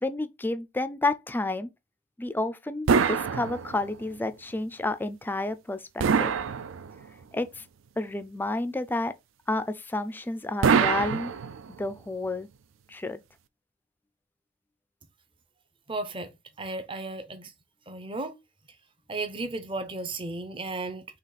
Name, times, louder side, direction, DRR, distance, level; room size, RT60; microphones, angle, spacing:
voice 1, 0.0-1.7 2.2-6.3 7.3-7.6 8.0-9.1 9.5-11.3 11.8-12.5 12.9-13.2, left 2 dB, 10° left, 0.3 m, -30 dB
sound 1, 2.9-4.1 6.0-7.2 10.6-11.9, right 6 dB, 85° right, 0.4 m, -25 dB
voice 2, 15.9-16.3 16.6-17.5 17.9-18.3 19.1-21.1, right 2 dB, 25° right, 0.6 m, -34 dB
4.1 x 2.9 x 4.0 m
head